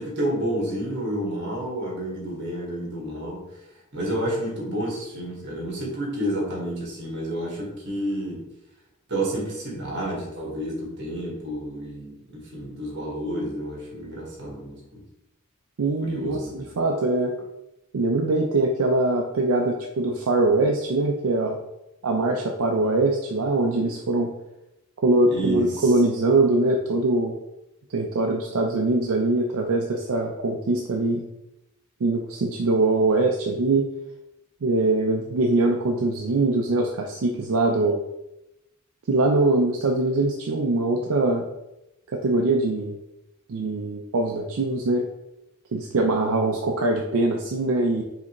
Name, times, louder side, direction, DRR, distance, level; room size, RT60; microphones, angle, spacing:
voice 1, 0.0-3.4 3.9-8.4 9.1-15.0 16.0-16.7 25.3-25.9, right 1 dB, 55° right, -3 dB, 1.6 m, -30 dB
voice 2, 15.8-17.3 17.9-21.6 22.0-24.3 25.0-27.4 27.9-31.2 32.0-33.8 34.6-38.0 39.1-41.5 42.1-42.9 43.5-45.1 45.7-48.0, right 2 dB, 75° right, 1 dB, 0.5 m, -22 dB
4.9 x 3.3 x 3.0 m, 0.90 s
head